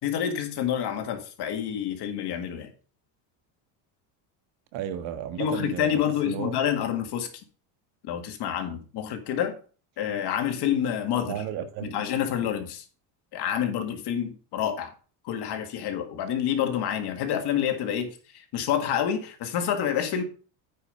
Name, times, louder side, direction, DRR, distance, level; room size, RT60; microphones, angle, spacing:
voice 1, 0.0-2.7 5.4-7.3 8.0-9.5 10.0-11.4 11.8-12.8 13.3-14.9 15.2-20.2, left 9 dB, 50° left, 1.8 m, -28 dB
voice 2, 4.7-5.9 6.2-6.5 11.3-12.0, right 10 dB, 65° right, 1.5 m, -33 dB
9.1 x 5.2 x 5.1 m
supercardioid pair, 115°, 50 cm